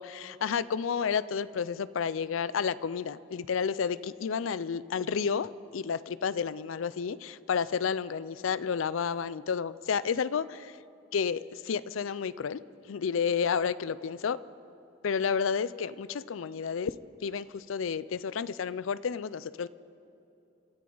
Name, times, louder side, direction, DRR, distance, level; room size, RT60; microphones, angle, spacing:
voice 1, 0.0-10.7 11.1-12.6 12.9-14.4 15.0-16.9 17.2-19.7, left 6 dB, 90° left, 17 dB, 0.4 m, -31 dB
28.0 x 13.0 x 3.9 m, 2.9 s
head